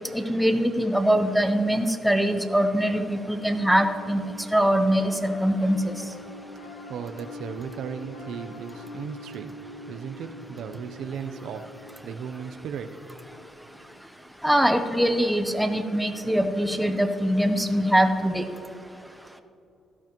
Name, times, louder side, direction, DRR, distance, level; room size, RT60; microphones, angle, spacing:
voice 1, 0.1-4.2 4.5-5.9 14.4-18.4, equal, ahead, 6 dB, 0.8 m, -23 dB
Piano, 2.9-14.4, left 2 dB, 80° left, 1.5 m, -45 dB
voice 2, 6.9-9.5 9.9-11.7 12.0-12.9, right 7 dB, 75° right, 8 dB, 0.7 m, -36 dB
16.5 x 12.0 x 3.1 m, 2.7 s
cardioid pair, 90°, 0 cm